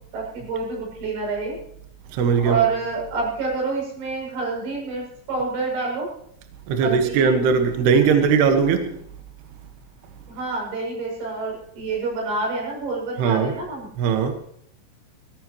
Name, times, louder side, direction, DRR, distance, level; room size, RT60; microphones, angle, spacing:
voice 1, 0.1-1.6 2.3-6.1 6.8-7.3 10.3-13.9, right 4 dB, 85° right, -2 dB, 10.5 m, -27 dB
voice 2, 2.1-2.6 6.7-9.0 13.2-13.6 14.0-14.4, right 6 dB, 65° right, 5 dB, 3.2 m, -19 dB
20.5 x 17.5 x 3.1 m, 0.69 s
omnidirectional pair, 6.0 m